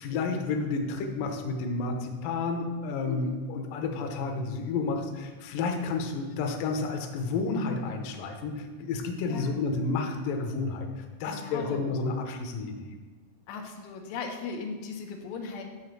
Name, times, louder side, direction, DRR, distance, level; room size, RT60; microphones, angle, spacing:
voice 1, 0.0-12.9, left 4 dB, 70° left, 3 dB, 2.2 m, -31 dB
voice 2, 3.0-3.4 9.2-9.6 11.2-11.8 13.5-15.6, left 5 dB, 85° left, 3 dB, 3.1 m, -37 dB
10.5 x 3.8 x 6.7 m, 1.3 s
omnidirectional pair, 4.8 m